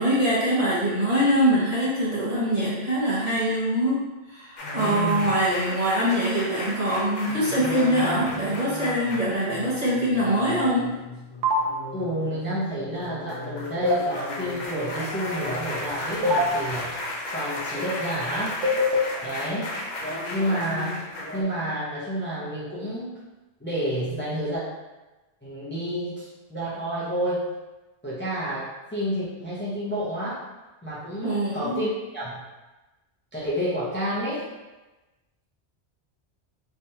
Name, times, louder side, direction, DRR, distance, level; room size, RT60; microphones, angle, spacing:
voice 1, 0.0-4.0 4.3-10.9 31.2-31.8, equal, 35° right, -10 dB, 1.4 m, -23 dB
sound 1, 4.6-21.4, left 1 dB, 50° left, 0.7 m, -34 dB
voice 2, 4.7-5.3 11.9-16.9 17.3-18.5 19.2-19.7 20.3-21.0 21.3-23.1 23.6-24.6 25.4-27.5 28.0-30.4 30.8-32.4 33.3-34.4, equal, 10° left, -9 dB, 0.8 m, -29 dB
sound 2, 11.4-11.6 13.8-14.0 16.2-16.5 18.6-19.0, left 1 dB, 85° right, 0.9 m, -21 dB
3.6 x 3.3 x 2.8 m, 1.1 s
omnidirectional pair, 1.1 m